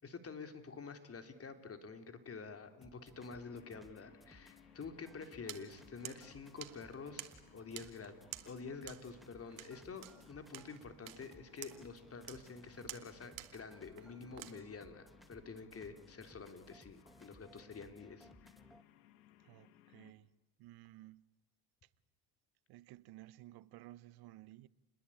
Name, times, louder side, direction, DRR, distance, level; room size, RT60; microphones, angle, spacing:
voice 1, 0.0-8.1 8.4-18.6, left 4 dB, 35° left, 3.5 m, -49 dB
sound 1, 2.8-18.8, equal, ahead, 2.0 m, -63 dB
sound 2, 3.2-20.1, left 12 dB, 85° left, 2.1 m, -65 dB
sound 3, 5.5-14.5, right 17 dB, 90° right, 1.9 m, -53 dB
voice 2, 19.4-20.3 20.6-21.3 22.7-24.7, right 16 dB, 65° right, 1.1 m, -55 dB
29.0 x 21.0 x 8.7 m
supercardioid pair, 80°, 40 cm